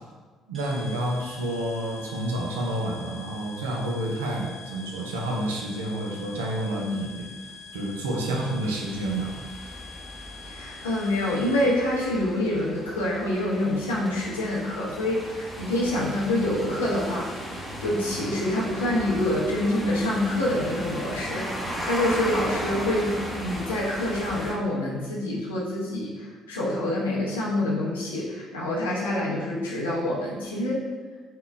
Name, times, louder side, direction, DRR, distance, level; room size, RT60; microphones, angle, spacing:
sound 1, 0.5-12.0, left 5 dB, 40° right, 1.4 m, -45 dB
voice 1, 0.5-9.3, right 1 dB, 85° right, -1 dB, 0.5 m, -29 dB
sound 2, 8.6-24.5, equal, 5° left, 0.8 m, -36 dB
voice 2, 10.5-21.6 21.8-30.9, left 1 dB, 90° left, -6 dB, 0.7 m, -26 dB
3.8 x 2.2 x 3.3 m, 1.4 s
hypercardioid pair, 50°, 0 cm